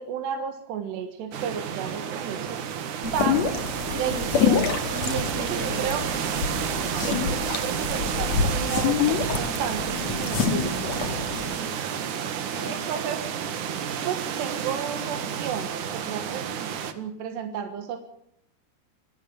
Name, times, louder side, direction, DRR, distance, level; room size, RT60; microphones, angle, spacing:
voice 1, 0.0-2.6 3.1-3.4 4.0-4.7 5.0-5.2 5.5-6.0 6.9-10.7 12.7-13.2 14.1-16.7 17.0-18.0, right 8 dB, 75° right, 6 dB, 3.7 m, -32 dB
sound 1, 1.3-16.9, right 8 dB, 55° right, 2.5 m, -30 dB
voice 2, 1.8-2.2 3.0-3.5 3.9-4.3 4.9-6.0 10.7-13.2, right 1 dB, 10° right, 6 dB, 1.2 m, -39 dB
sound 2, 3.0-11.6, left 6 dB, 45° left, 2.9 m, -27 dB
26.5 x 16.5 x 7.0 m, 0.75 s
omnidirectional pair, 5.0 m